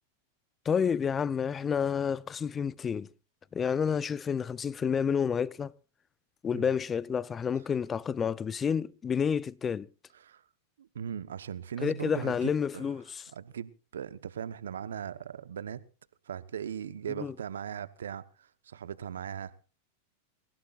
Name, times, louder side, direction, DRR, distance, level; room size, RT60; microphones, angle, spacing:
voice 1, 0.6-3.1 3.5-5.7 6.4-9.9 11.8-13.2 17.2-17.3, left 7 dB, 25° left, 0.7 m, -29 dB
voice 2, 10.8-12.8 13.3-15.8 16.3-19.6, right 8 dB, 80° right, 1.1 m, -39 dB
26.0 x 16.0 x 2.5 m
hypercardioid pair, 105°, 0 cm